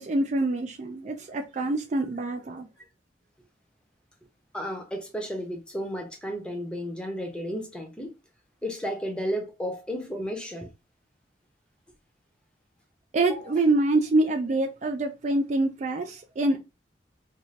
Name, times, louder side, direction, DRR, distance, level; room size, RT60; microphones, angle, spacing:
voice 1, 0.0-2.7 13.1-16.6, right 2 dB, 40° right, 0.3 m, -25 dB
voice 2, 4.5-8.1 8.6-10.7 13.2-13.6, equal, 5° left, 0.6 m, -33 dB
2.6 x 2.4 x 3.0 m
head